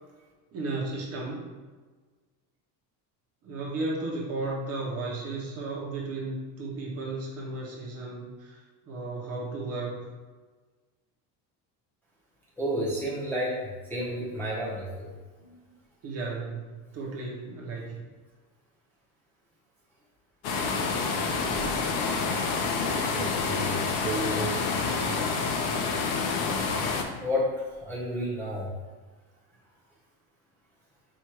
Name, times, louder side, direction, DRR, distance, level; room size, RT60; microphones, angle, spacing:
voice 1, 0.5-1.4 3.4-8.6 8.9-10.1 16.0-18.0, right 2 dB, 35° right, -3 dB, 0.6 m, -34 dB
voice 2, 12.6-15.1 15.4-15.6 21.4-21.7 23.1-24.5 26.6-26.8 27.2-28.7, equal, 5° left, -9 dB, 0.6 m, -31 dB
sound 1, 20.4-27.0, left 4 dB, 75° left, 0.7 m, -28 dB
4.6 x 2.3 x 4.4 m, 1.4 s
cardioid pair, 180°, 44 cm